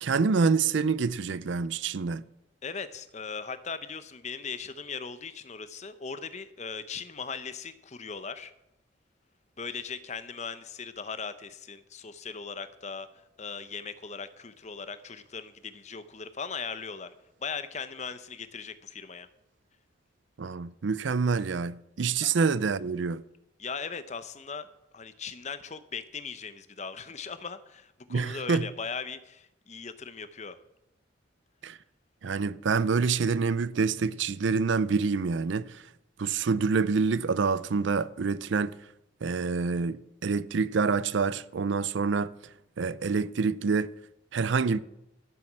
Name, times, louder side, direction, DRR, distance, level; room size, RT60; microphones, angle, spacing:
voice 1, 0.0-2.2 20.4-23.2 28.1-28.7 31.6-31.8 32.2-35.8 36.2-38.7 39.2-42.3 42.8-43.9 44.3-44.8, right 5 dB, 70° right, 0.5 m, -27 dB
voice 2, 2.6-8.5 9.6-13.1 13.4-17.1 17.4-19.3 22.2-22.4 23.6-30.6, left 5 dB, 35° left, 0.7 m, -39 dB
12.0 x 7.7 x 7.4 m
head